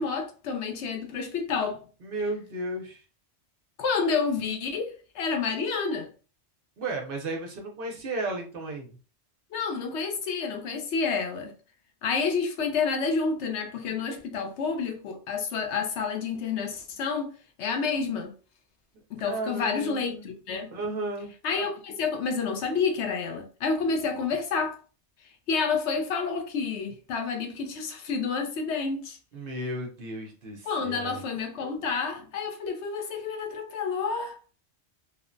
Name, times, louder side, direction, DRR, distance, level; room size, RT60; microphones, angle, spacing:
voice 1, 0.0-1.8 3.8-6.1 9.5-11.5 12.0-17.3 17.6-18.3 19.1-20.7 21.4-24.8 25.5-29.2 30.7-34.4, left 5 dB, 75° left, 0.9 m, -29 dB
voice 2, 2.0-3.0 6.8-8.9 19.2-20.3 20.7-21.3 29.3-31.2, right 2 dB, 60° right, 0.7 m, -34 dB
3.0 x 2.0 x 2.5 m
omnidirectional pair, 1.2 m